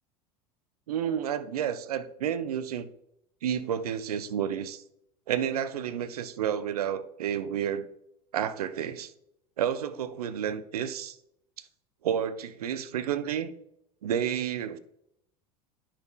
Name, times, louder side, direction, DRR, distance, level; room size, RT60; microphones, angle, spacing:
voice 1, 0.9-2.9 3.4-4.8 5.3-7.9 8.3-9.1 9.6-11.2 12.0-13.5 14.0-14.8, right 9 dB, 75° right, 14 dB, 0.5 m, -30 dB
10.0 x 5.7 x 2.3 m, 0.77 s
hypercardioid pair, 80°, 19 cm